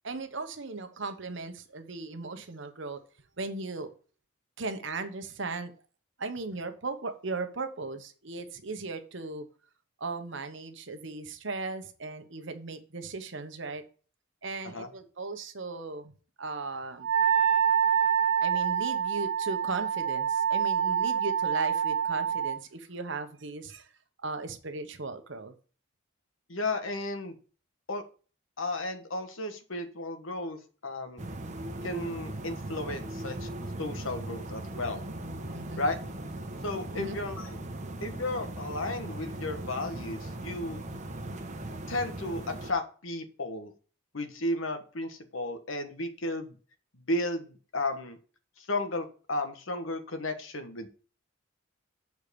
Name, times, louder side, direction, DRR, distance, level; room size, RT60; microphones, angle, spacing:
voice 1, 0.0-3.0 3.4-3.9 4.6-5.7 6.2-9.5 10.0-13.8 14.4-16.1 16.4-17.1 18.4-23.9 24.2-25.5 35.5-35.9 37.0-37.2, right 3 dB, 65° right, 8 dB, 1.1 m, -37 dB
Wind instrument woodwind instrument, 17.0-22.6, right 8 dB, 90° right, 0.5 m, -26 dB
voice 2, 26.5-27.4 27.9-28.0 28.6-31.2 31.8-33.5 33.8-35.0 35.8-36.0 36.6-37.6 38.0-40.8 41.9-43.7 44.1-46.6 46.9-48.2 48.6-50.9, left 2 dB, 75° left, 8 dB, 1.4 m, -34 dB
sound 1, 31.2-42.7, right 1 dB, 35° right, 1.1 m, -39 dB
6.9 x 4.7 x 6.8 m, 0.39 s
head